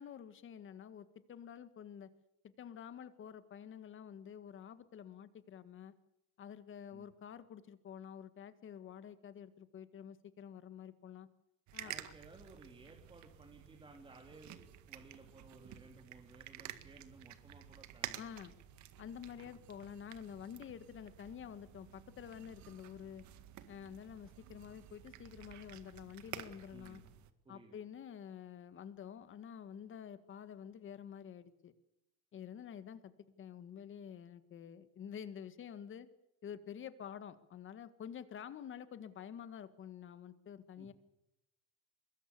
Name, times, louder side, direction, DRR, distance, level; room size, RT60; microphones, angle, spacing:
voice 1, 0.0-2.1 2.4-5.9 6.4-11.3 11.7-11.9 18.2-18.5 19.0-23.3 23.7-27.0 27.5-31.7 32.3-36.1 36.4-40.9, left 8 dB, 35° left, 13 dB, 1.8 m, -49 dB
sound 1, 11.7-27.3, right 12 dB, 55° right, 1.9 m, -51 dB
voice 2, 11.8-18.5 19.0-19.3 26.7-27.1 27.4-27.8 40.8-40.9, right 3 dB, 15° right, 1 dB, 3.0 m, -58 dB
24.0 x 22.0 x 6.9 m, 0.88 s
cardioid pair, 150°, 34 cm